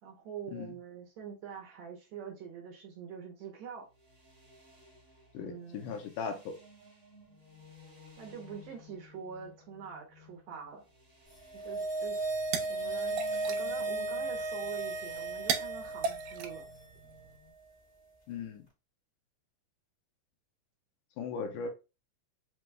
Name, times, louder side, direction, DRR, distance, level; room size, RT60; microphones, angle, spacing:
voice 1, 0.0-3.9 5.4-6.0 8.2-10.8 11.5-12.4 12.7-13.2 13.5-16.7 21.4-21.7, right 7 dB, 70° right, 1.8 m, -45 dB
sound 1, 3.8-17.5, left 1 dB, 35° right, 1.1 m, -57 dB
voice 2, 5.3-6.6 18.3-18.7 21.2-21.7, left 5 dB, 80° left, 2.1 m, -38 dB
sound 2, 11.4-16.8 17.1-17.2, right 2 dB, 30° left, 0.7 m, -35 dB
sound 3, 12.1-17.4, right 7 dB, 85° right, 2.2 m, -39 dB
5.1 x 2.3 x 3.2 m
omnidirectional pair, 3.7 m